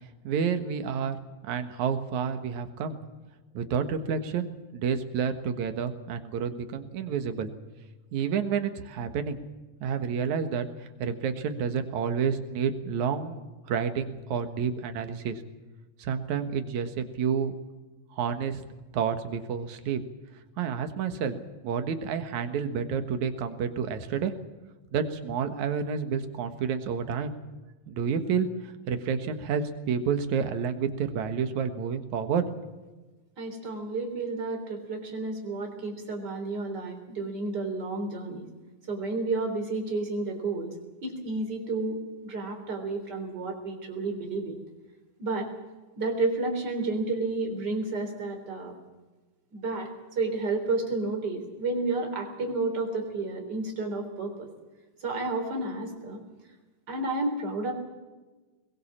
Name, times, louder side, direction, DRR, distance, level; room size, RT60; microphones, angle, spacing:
voice 1, 0.2-1.2 1.4-3.0 3.5-7.5 8.1-9.4 9.8-13.4 13.7-15.4 16.0-17.5 18.1-18.6 18.9-20.0 20.6-21.4 21.6-24.3 24.9-27.3 27.9-32.5, right 6 dB, 75° right, 8 dB, 2.9 m, -29 dB
voice 2, 33.4-38.5 38.9-40.8 41.0-44.6 45.2-45.5 46.0-48.7 49.5-49.9 50.2-54.5 55.0-56.2 56.9-57.7, right 3 dB, 35° right, 3 dB, 4.2 m, -31 dB
21.5 x 20.5 x 7.4 m, 1.2 s
omnidirectional pair, 3.4 m